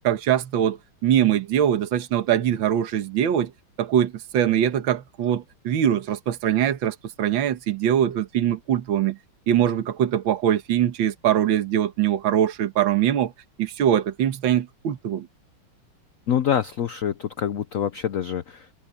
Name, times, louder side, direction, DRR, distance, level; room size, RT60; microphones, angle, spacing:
voice 1, 0.0-3.5 3.8-9.2 9.5-13.3 13.6-15.3, right 10 dB, 70° right, 2.0 m, -22 dB
voice 2, 16.3-18.7, left 9 dB, 80° left, 0.7 m, -26 dB
omnidirectional pair, 2.3 m